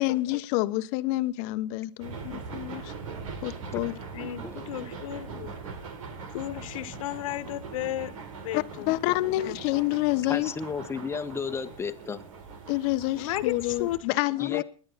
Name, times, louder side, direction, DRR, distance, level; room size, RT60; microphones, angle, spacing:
voice 1, 0.0-2.9 3.4-3.9 8.5-10.5 12.7-14.6, left 18 dB, 50° left, 1.2 m, -28 dB
sound 1, 2.0-14.0, right 5 dB, 75° right, 4.2 m, -41 dB
voice 2, 4.1-5.5 6.3-8.1 8.4-8.9 13.1-14.0, left 14 dB, 70° left, 1.7 m, -33 dB
voice 3, 10.3-12.2 14.4-14.6, left 5 dB, 15° left, 1.4 m, -33 dB
30.0 x 10.5 x 4.2 m
hypercardioid pair, 120°, 18 cm